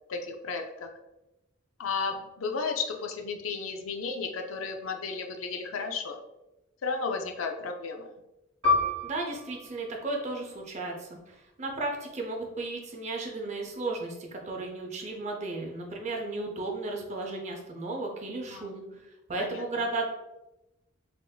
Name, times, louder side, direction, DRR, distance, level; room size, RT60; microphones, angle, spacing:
voice 1, 0.1-0.9 1.8-6.2 6.8-8.1 18.5-18.7 19.4-19.6, left 4 dB, 85° left, 4 dB, 0.4 m, -33 dB
Piano, 8.6-13.7 14.0-14.2 14.9-15.3, left 3 dB, 75° right, 1.1 m, -32 dB
voice 2, 9.0-19.0 19.3-20.1, right 2 dB, 35° right, 1 dB, 0.5 m, -34 dB
3.5 x 2.6 x 2.2 m, 0.98 s
head